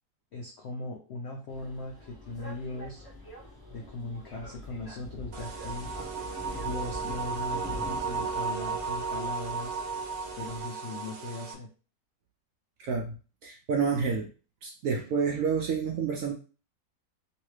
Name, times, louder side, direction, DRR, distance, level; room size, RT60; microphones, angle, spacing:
voice 1, 0.3-3.0 3.7-5.9 6.5-9.8 10.4-11.7, left 2 dB, 80° left, 0 dB, 0.6 m, -39 dB
sound 1, 1.5-10.6, left 1 dB, 20° left, 0.6 m, -44 dB
sound 2, 5.3-11.5, right 5 dB, 90° right, 1.3 m, -34 dB
voice 2, 12.8-13.2 13.4-14.3 14.6-16.3, right 6 dB, 70° right, 1 dB, 0.8 m, -29 dB
2.9 x 2.8 x 3.1 m, 0.36 s
omnidirectional pair, 1.8 m